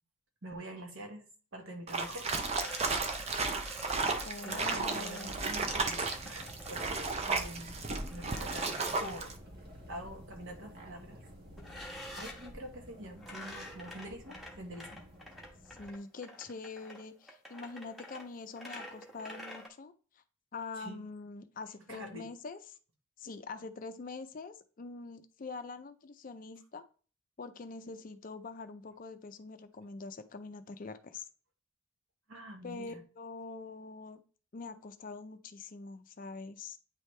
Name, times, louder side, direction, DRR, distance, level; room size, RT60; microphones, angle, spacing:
voice 1, 0.4-1.2 1.5-2.5 3.2-3.3 4.4-7.8 8.1-9.3 9.9-11.2 12.1-15.1 20.8-21.0 21.9-22.3 32.3-33.0, right 1 dB, 65° right, 3 dB, 1.3 m, -46 dB
sound 1, 1.9-9.3, right 4 dB, 30° right, 0.5 m, -34 dB
sound 2, 2.6-6.9 8.1-9.2 11.6-12.5 13.2-19.7, left 1 dB, ahead, 1.0 m, -48 dB
voice 2, 4.2-5.4 15.7-20.2 20.5-22.8 23.2-26.8 27.4-31.2 32.6-34.2 34.5-36.8, left 4 dB, 40° left, 10 dB, 0.4 m, -44 dB
sound 3, 5.2-15.9, equal, 45° right, 1.1 m, -51 dB
8.9 x 3.3 x 3.2 m, 0.39 s
head